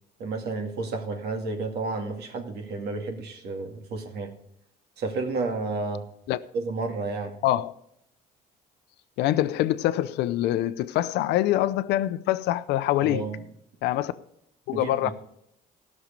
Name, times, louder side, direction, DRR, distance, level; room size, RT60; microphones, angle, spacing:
voice 1, 0.2-4.4 5.0-6.1 6.5-7.4 13.0-13.4 14.7-15.1, right 3 dB, 70° right, 2.2 m, -31 dB
voice 2, 7.4-7.7 9.2-13.2 13.8-14.1 14.7-15.1, left 14 dB, 85° left, 0.6 m, -24 dB
16.5 x 6.4 x 5.2 m
cardioid pair, 110°, 17 cm